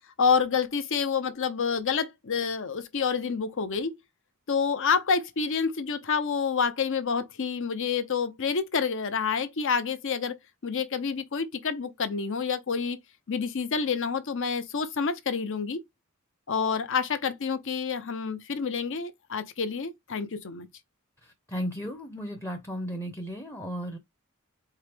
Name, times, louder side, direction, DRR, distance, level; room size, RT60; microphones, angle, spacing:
voice 1, 0.2-4.0 4.5-10.4 10.6-13.0 13.3-15.8 16.5-20.7, left 5 dB, 60° left, 0.7 m, -28 dB
voice 2, 21.2-24.0, equal, 10° left, 0.7 m, -35 dB
4.7 x 2.7 x 3.4 m
head